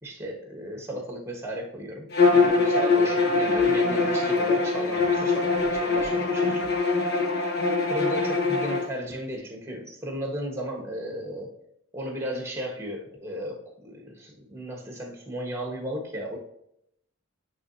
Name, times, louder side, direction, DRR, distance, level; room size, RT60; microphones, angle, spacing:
voice 1, 0.0-6.7 7.9-11.6 11.9-16.4, equal, 10° right, 1 dB, 1.3 m, -35 dB
Bowed string instrument, 2.1-8.9, left 3 dB, 50° left, 1.1 m, -23 dB
9.7 x 3.8 x 2.7 m, 0.75 s
head